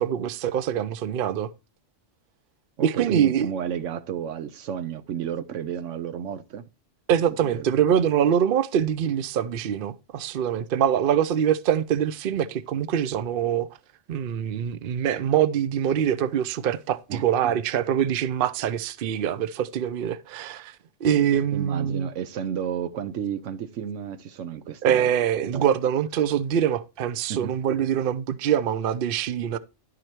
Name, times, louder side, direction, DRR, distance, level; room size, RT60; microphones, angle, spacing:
voice 1, 0.0-1.5 2.8-3.5 7.1-13.7 14.1-20.7 21.0-22.1 24.8-29.6, right 9 dB, 55° right, 0.7 m, -24 dB
voice 2, 2.8-6.7 7.4-7.7 17.1-17.5 21.5-25.1 25.5-25.7 27.3-27.5, right 8 dB, 85° right, 1.1 m, -32 dB
11.0 x 4.9 x 4.4 m
omnidirectional pair, 1.2 m